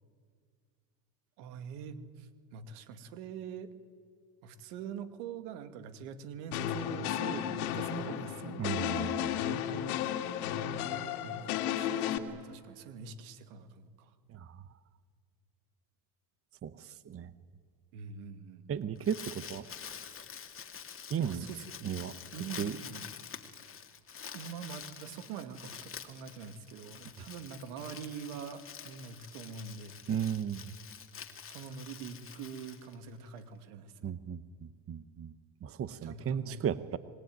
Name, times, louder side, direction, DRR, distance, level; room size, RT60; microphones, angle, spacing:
voice 1, 1.4-3.7 4.4-8.7 11.2-14.1 17.9-18.9 21.2-21.6 22.3-23.1 24.3-30.2 31.5-33.9 36.0-36.6, right 6 dB, 80° right, 10 dB, 2.3 m, -44 dB
sound 1, 6.5-12.2, left 10 dB, 85° left, 2.1 m, -33 dB
voice 2, 8.6-9.3 14.3-14.5 16.6-17.3 18.7-19.7 21.1-21.5 21.8-22.1 22.6-22.7 30.1-30.6 34.0-35.3 35.6-37.0, right 8 dB, 30° right, 14 dB, 1.0 m, -35 dB
Crumpling crinkling, 18.8-33.4, left 7 dB, 30° left, 2.2 m, -47 dB
26.5 x 20.5 x 9.4 m, 2.1 s
supercardioid pair, 105°, 43 cm